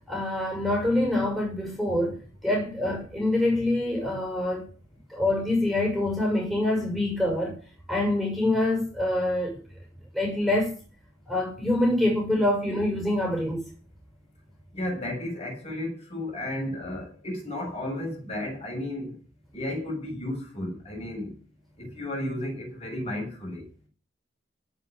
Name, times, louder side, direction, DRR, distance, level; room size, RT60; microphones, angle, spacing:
voice 1, 0.0-4.7 5.1-7.6 7.9-9.6 10.1-10.7 11.3-13.6, left 1 dB, ahead, 6.2 m, -25 dB
voice 2, 14.7-19.1 19.5-21.3 21.8-23.6, left 1 dB, 30° left, 7.3 m, -33 dB
17.5 x 6.1 x 9.4 m
head